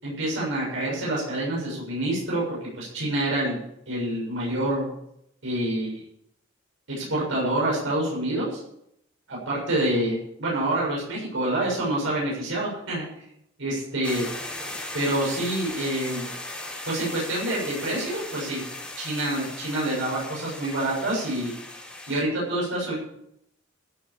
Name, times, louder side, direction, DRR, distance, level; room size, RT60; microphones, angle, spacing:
voice 1, 0.0-3.6 3.9-4.9 5.4-6.0 6.9-8.6 9.3-13.0 13.6-14.3 14.9-16.2 16.9-18.6 19.0-21.5 22.1-22.9, right 1 dB, 80° right, -5 dB, 7.3 m, -27 dB
sound 1, 14.0-22.2, left 2 dB, 5° left, 4.4 m, -37 dB
15.5 x 8.0 x 7.2 m, 0.76 s
head